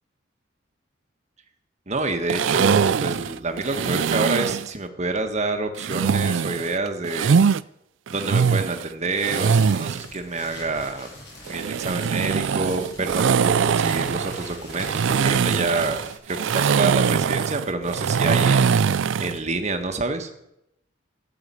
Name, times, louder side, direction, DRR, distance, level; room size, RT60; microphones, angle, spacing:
voice 1, 1.9-7.4 8.1-11.1 11.5-18.6 19.2-20.3, right 3 dB, 35° right, 6 dB, 1.5 m, -27 dB
sound 1, 2.3-4.7 5.8-7.6 8.1-10.1 11.5-19.4, right 6 dB, 65° right, 0.4 m, -22 dB
sound 2, 9.3-16.2, left 1 dB, 60° left, 6.9 m, -43 dB
14.5 x 6.9 x 9.7 m, 0.82 s
head